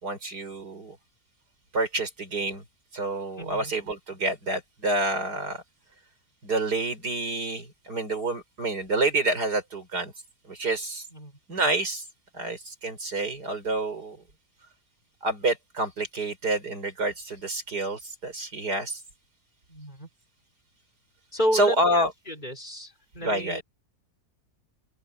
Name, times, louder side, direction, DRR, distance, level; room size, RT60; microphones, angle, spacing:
voice 1, 0.0-1.0 1.7-2.6 2.9-5.6 6.4-10.1 10.5-11.0 11.5-12.0 12.3-14.2 15.2-19.0 21.5-22.1 23.2-23.6, right 2 dB, 85° right, 5.8 m, -28 dB
voice 2, 3.4-3.7 11.1-11.3 19.7-20.1 21.3-23.6, equal, 30° left, 5.1 m, -31 dB
open air
omnidirectional pair, 1.7 m